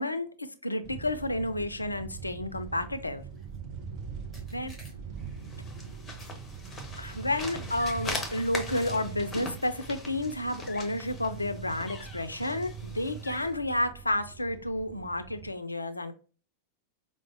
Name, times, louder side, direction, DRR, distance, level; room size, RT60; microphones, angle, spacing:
voice 1, 0.0-3.2 4.5-4.7 6.9-16.1, left 1 dB, 85° left, 10 dB, 0.3 m, -31 dB
sound 1, 0.8-15.5, right 6 dB, 40° right, 0.5 m, -44 dB
sound 2, 3.3-3.6 4.3-5.3 6.2-7.1 8.1-8.9 9.4-9.8 10.1-10.4 11.0-11.5, left 1 dB, ahead, 1.2 m, -57 dB
sound 3, 5.3-13.5, left 1 dB, 20° left, 0.7 m, -40 dB
4.7 x 2.0 x 2.4 m, 0.38 s
figure-of-eight pair, 90°, 0 cm